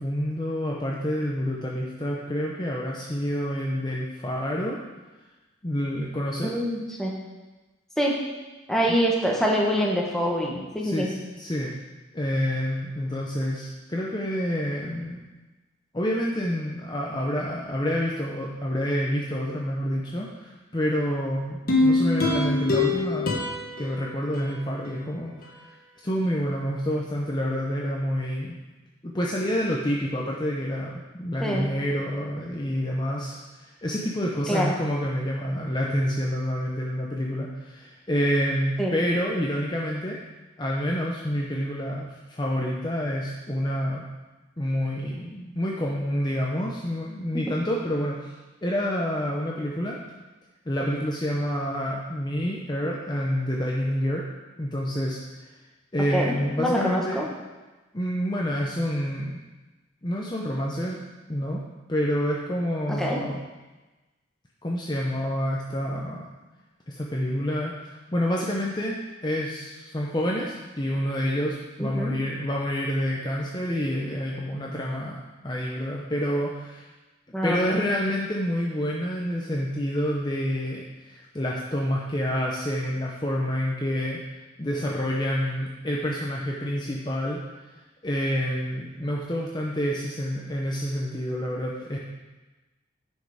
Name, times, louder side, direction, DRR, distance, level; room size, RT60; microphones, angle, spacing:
voice 1, 0.0-4.8 5.6-6.6 8.9-9.0 10.8-11.7 12.1-15.2 15.9-23.4 23.8-25.8 26.0-28.5 29.0-40.2 40.6-44.0 44.6-48.3 48.6-50.0 50.7-54.2 54.6-55.2 55.5-55.6 55.9-57.2 57.9-59.4 60.0-61.0 61.3-61.6 61.9-63.4 64.6-66.3 66.9-76.9 77.4-87.7 88.0-92.0, equal, 20° left, -3 dB, 0.8 m, -28 dB
voice 2, 6.4-7.1 8.0-8.1 8.7-11.1 31.4-31.7 34.5-34.7 38.8-38.9 56.1-57.3 63.0-63.2 71.8-72.1 77.3-77.9, equal, ahead, -2 dB, 1.3 m, -25 dB
sound 1, 21.7-25.0 25.4-25.5, left 2 dB, 50° left, 1.4 m, -25 dB
10.0 x 6.4 x 4.9 m, 1.2 s
head